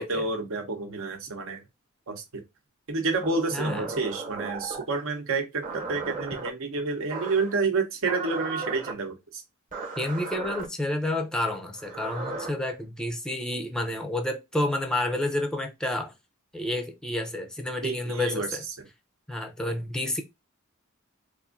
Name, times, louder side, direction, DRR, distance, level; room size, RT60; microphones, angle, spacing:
voice 1, 0.0-1.6 2.1-2.2 2.9-9.4 17.8-18.5, right 3 dB, 65° right, 0.9 m, -29 dB
sound 1, 3.2-4.9 5.6-6.5 7.1-7.5 8.0-8.9 9.7-10.6 11.7-12.5, right 4 dB, 35° right, 1.1 m, -35 dB
voice 2, 3.5-3.9 10.0-16.1 16.5-18.6 19.3-20.2, left 1 dB, 5° left, 0.5 m, -30 dB
4.1 x 2.6 x 2.5 m
head